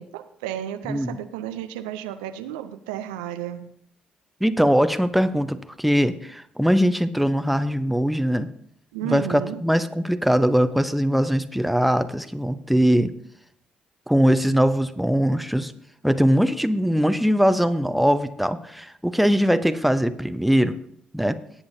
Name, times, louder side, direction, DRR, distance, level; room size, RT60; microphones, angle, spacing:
voice 1, 0.0-3.7 8.9-9.6, right 11 dB, 80° right, 0.5 m, -33 dB
voice 2, 4.4-8.5 9.0-13.1 14.1-15.7 16.0-20.8 21.1-21.4, equal, ahead, 0.8 m, -21 dB
18.0 x 8.6 x 2.7 m
hypercardioid pair, 45°, 4 cm